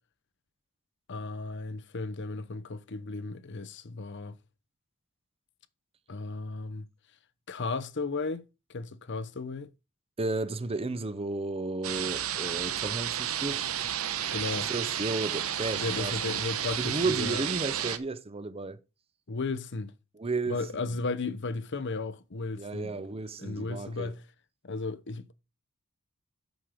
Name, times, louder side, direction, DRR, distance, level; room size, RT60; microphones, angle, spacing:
voice 1, 1.1-4.4 6.1-6.9 7.5-8.4 8.7-9.7 14.3-14.7 15.7-17.5 19.3-19.9 20.5-23.0 23.4-24.2 24.6-25.3, left 3 dB, 55° left, 0.8 m, -35 dB
voice 2, 10.2-13.6 14.5-16.1 16.8-18.8 20.2-20.6 22.6-24.1, right 3 dB, 25° right, 0.6 m, -33 dB
sound 1, 11.8-18.0, right 10 dB, 75° right, 0.9 m, -32 dB
9.2 x 6.5 x 5.0 m
head